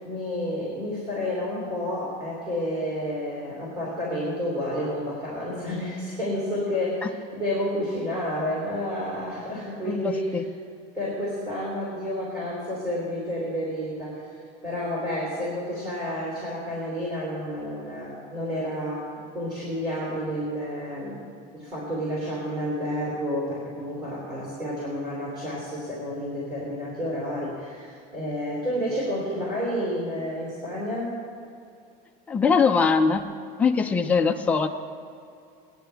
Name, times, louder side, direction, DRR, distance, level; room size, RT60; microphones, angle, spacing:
voice 1, 0.0-10.3 10.9-21.2 21.5-31.2, equal, 20° right, -8 dB, 3.1 m, -30 dB
voice 2, 9.8-10.4 32.3-33.2 33.6-34.7, left 5 dB, 5° left, 3 dB, 0.4 m, -22 dB
18.5 x 10.5 x 3.4 m, 2.5 s
cardioid pair, 180°, 19 cm